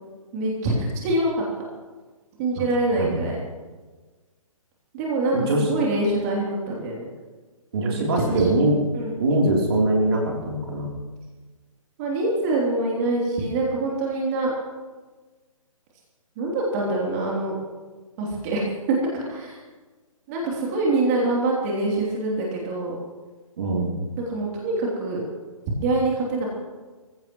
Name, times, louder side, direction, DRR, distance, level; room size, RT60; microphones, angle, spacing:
voice 1, 0.3-1.4 2.4-3.4 4.9-7.1 7.9-8.5 8.9-9.1 12.0-14.5 16.4-17.6 18.2-18.6 18.9-19.6 20.3-23.0 24.3-25.2 25.8-26.5, right 2 dB, 30° right, -3 dB, 3.3 m, -25 dB
voice 2, 5.3-5.6 7.7-8.8 9.2-10.9 23.6-24.0, right 2 dB, 45° right, -2 dB, 3.6 m, -22 dB
24.5 x 16.0 x 3.2 m, 1.3 s
figure-of-eight pair, 135°, 18 cm